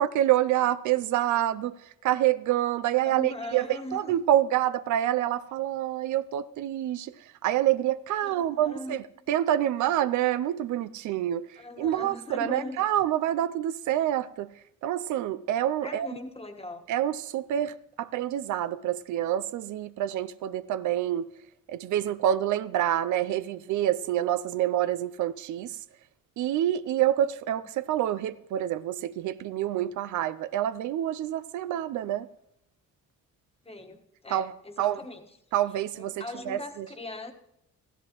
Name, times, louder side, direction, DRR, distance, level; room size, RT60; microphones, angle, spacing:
voice 1, 0.0-1.7 2.0-14.5 14.8-16.1 16.9-21.3 21.7-25.8 26.4-32.3 34.3-34.5 34.8-35.0 35.5-36.9, right 12 dB, 75° right, 0.5 m, -27 dB
voice 2, 3.0-4.1 8.2-9.0 9.3-9.4 11.6-12.8 15.8-16.8 33.6-35.3 35.9-37.3, left 2 dB, 20° left, 1.4 m, -40 dB
15.0 x 13.0 x 3.0 m
cardioid pair, 90°, 30 cm